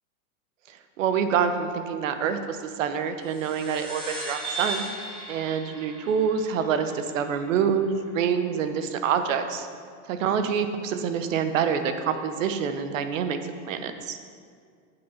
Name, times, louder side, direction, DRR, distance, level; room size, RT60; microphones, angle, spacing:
voice 1, 1.0-4.9 5.3-9.7 10.1-13.4 13.7-14.2, right 7 dB, 60° right, 8 dB, 0.9 m, -26 dB
sound 1, 3.2-8.1, right 2 dB, 10° right, 2.3 m, -37 dB
8.1 x 7.2 x 5.7 m, 2.1 s
supercardioid pair, 175°, 43 cm